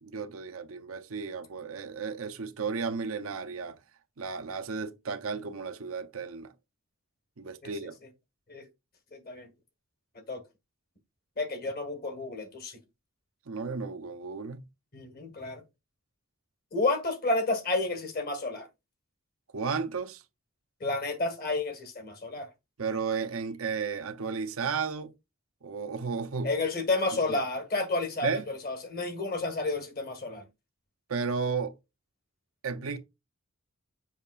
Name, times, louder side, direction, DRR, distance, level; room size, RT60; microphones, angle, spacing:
voice 1, 0.0-3.8 4.2-6.5 7.4-8.0 13.5-14.7 19.5-20.2 22.8-25.1 25.6-26.5 27.3-27.4 28.2-28.4 31.1-31.7 32.6-33.0, right 5 dB, 85° right, 0.8 m, -33 dB
voice 2, 9.1-9.5 10.3-10.4 11.4-12.8 14.9-15.6 16.7-18.7 20.8-22.5 26.4-30.4, left 2 dB, 45° left, 1.6 m, -31 dB
7.1 x 5.6 x 2.4 m
head